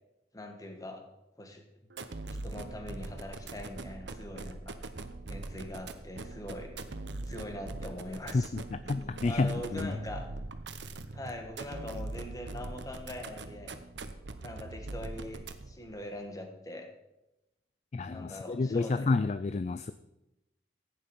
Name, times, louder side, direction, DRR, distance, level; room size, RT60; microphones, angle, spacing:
voice 1, 0.3-1.0 1.4-1.6 2.3-4.8 5.3-6.7 7.2-10.3 11.1-13.8 14.3-16.9 18.1-19.1, left 1 dB, 20° left, 4 dB, 1.6 m, -42 dB
sound 1, 1.9-15.9, right 2 dB, 80° right, 0.9 m, -42 dB
voice 2, 8.3-10.0 17.9-19.9, left 3 dB, 40° left, 13 dB, 0.4 m, -30 dB
15.0 x 9.2 x 5.4 m, 0.95 s
head